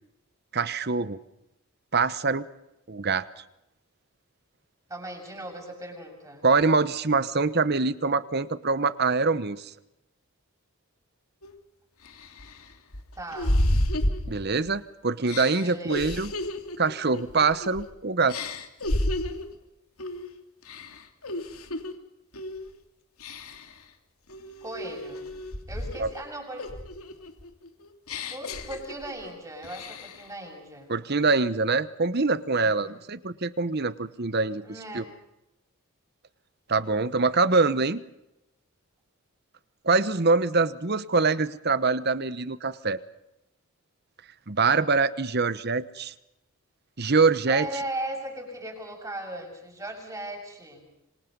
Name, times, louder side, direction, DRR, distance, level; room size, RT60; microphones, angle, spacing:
voice 1, 0.5-1.2 1.9-2.5 2.9-3.2 6.4-9.7 14.3-16.3 16.8-18.3 26.0-26.1 30.9-34.6 34.9-35.0 36.7-38.0 39.8-43.0 44.5-46.1 47.0-47.7, right 4 dB, 45° right, 15 dB, 1.1 m, -24 dB
voice 2, 4.9-6.5 13.1-13.6 15.6-16.2 24.6-25.2 25.7-26.7 28.3-30.9 32.6-33.0 34.6-35.2 47.5-50.8, right 1 dB, 15° right, 2 dB, 6.9 m, -38 dB
sound 1, 11.4-11.5 12.0-14.8 15.3-17.9 18.3-19.5 20.0-20.3 20.6-21.9 22.3-22.7 23.2-23.8 24.3-26.2 26.6-29.3 29.6-30.3, left 1 dB, 80° left, 3.0 m, -31 dB
27.0 x 25.5 x 5.4 m, 0.89 s
head